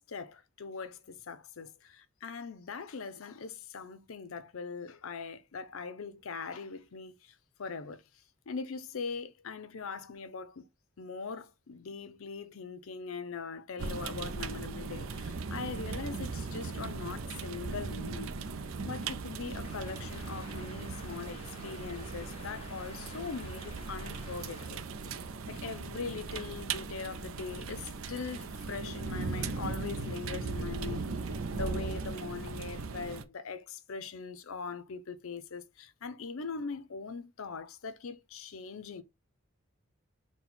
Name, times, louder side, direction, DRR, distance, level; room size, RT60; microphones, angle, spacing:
voice 1, 0.0-10.7 11.0-18.4 18.8-31.1 31.5-39.0, left 5 dB, 75° left, 0.6 m, -41 dB
sound 1, 13.8-33.2, right 4 dB, 75° right, 0.5 m, -38 dB
sound 2, 19.6-24.7, left 3 dB, 30° left, 0.9 m, -52 dB
4.2 x 2.2 x 4.3 m
head